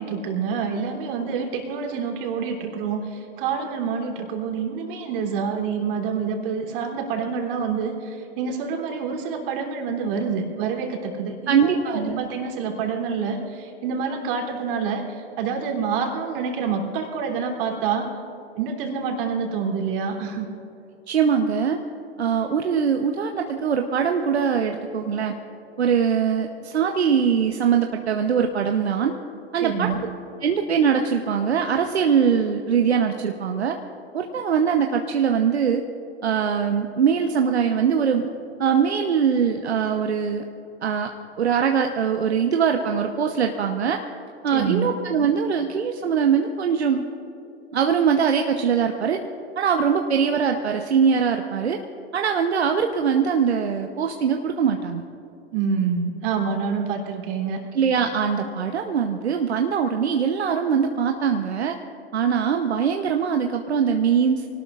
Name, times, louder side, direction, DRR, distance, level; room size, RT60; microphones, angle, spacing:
voice 1, 0.0-18.1 18.6-20.5 29.6-30.0 44.5-44.9 55.5-57.6, right 6 dB, 55° right, 1 dB, 3.2 m, -27 dB
voice 2, 11.5-12.3 21.1-21.8 22.2-25.3 25.8-29.1 29.5-29.9 30.4-33.8 34.1-35.8 36.2-38.3 38.6-40.4 40.8-41.1 41.4-44.0 44.4-47.0 47.7-49.2 49.6-51.8 52.1-55.0 57.7-61.8 62.1-64.5, right 7 dB, 85° right, 4 dB, 0.9 m, -22 dB
24.5 x 18.5 x 2.5 m, 2.9 s
hypercardioid pair, 100°, 32 cm